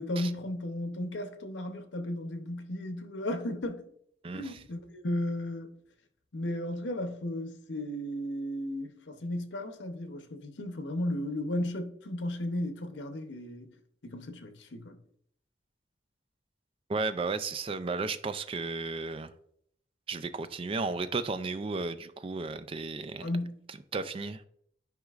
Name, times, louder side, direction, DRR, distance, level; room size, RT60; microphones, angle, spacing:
voice 1, 0.0-3.9 4.3-5.8 6.3-13.8 14.0-15.0 23.2-23.6, left 1 dB, 85° left, 0.8 m, -35 dB
voice 2, 4.2-4.6 16.9-19.3 20.1-23.3 23.9-24.4, right 3 dB, 30° right, 0.4 m, -34 dB
9.4 x 5.0 x 2.4 m
head